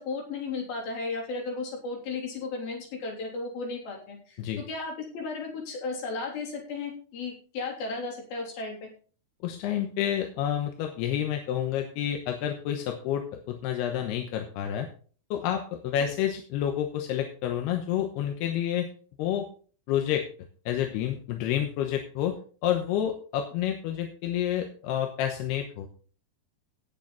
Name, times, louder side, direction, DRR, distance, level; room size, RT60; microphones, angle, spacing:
voice 1, 0.0-4.4 4.7-8.9, left 3 dB, 65° left, 0 dB, 5.2 m, -34 dB
voice 2, 9.4-14.9 15.3-18.9 19.2-19.5 19.9-20.3 20.7-22.4 22.6-25.9, left 10 dB, 85° left, 4 dB, 3.1 m, -29 dB
17.5 x 6.8 x 4.0 m, 0.41 s
omnidirectional pair, 4.7 m